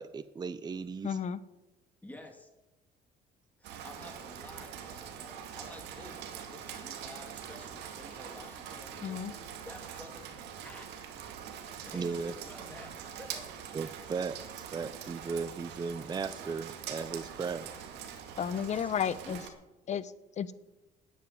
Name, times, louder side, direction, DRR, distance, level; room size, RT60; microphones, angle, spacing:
voice 1, 0.0-1.2 11.9-12.3 13.7-17.7, right 5 dB, 25° right, 14 dB, 0.6 m, -36 dB
voice 2, 1.0-1.4 9.0-9.3 18.4-19.4 19.9-20.5, left 8 dB, 45° left, 15 dB, 0.9 m, -33 dB
voice 3, 2.0-2.5 3.6-10.9 11.8-13.4 18.5-19.7, left 1 dB, 10° left, 3 dB, 3.1 m, -51 dB
Rain, 3.6-19.5, right 8 dB, 85° right, 2.1 m, -44 dB
10.0 x 9.4 x 9.2 m, 0.96 s
cardioid pair, 110°, 17 cm